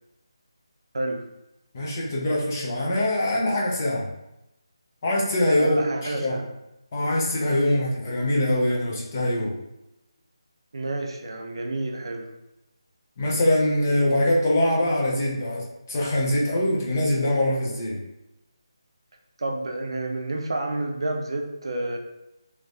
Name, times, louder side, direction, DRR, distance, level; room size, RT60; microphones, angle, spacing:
voice 1, 1.7-4.1 5.0-6.4 6.9-9.6 13.2-18.0, left 1 dB, 30° left, -4 dB, 0.8 m, -23 dB
voice 2, 5.5-6.5 10.7-12.3 19.4-22.0, right 2 dB, 60° right, 2 dB, 0.5 m, -29 dB
3.2 x 3.2 x 2.6 m, 0.90 s
figure-of-eight pair, 170°, 3 cm